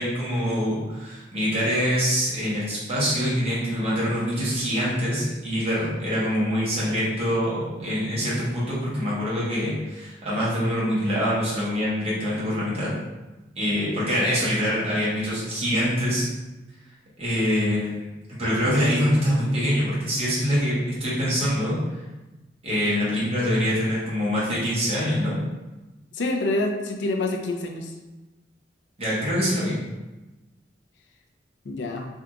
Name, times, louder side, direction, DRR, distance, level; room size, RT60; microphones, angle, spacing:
voice 1, 0.0-12.9 13.5-16.2 17.2-18.1 18.4-21.7 22.6-25.3 29.0-29.8, equal, 35° right, -9 dB, 1.2 m, -24 dB
voice 2, 26.1-27.9 31.6-32.1, left 2 dB, 75° left, 2 dB, 0.5 m, -27 dB
3.5 x 2.8 x 2.4 m, 1.1 s
head